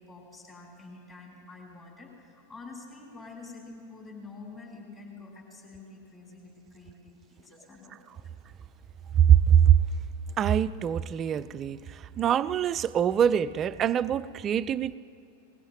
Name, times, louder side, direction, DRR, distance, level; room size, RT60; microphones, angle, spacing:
voice 1, 0.0-8.1, left 3 dB, 25° left, -2 dB, 5.1 m, -47 dB
voice 2, 9.3-9.7 10.4-11.8 12.2-15.0, right 9 dB, 30° right, 16 dB, 0.4 m, -23 dB
21.5 x 20.5 x 3.0 m, 2.7 s
figure-of-eight pair, 90°, 0 cm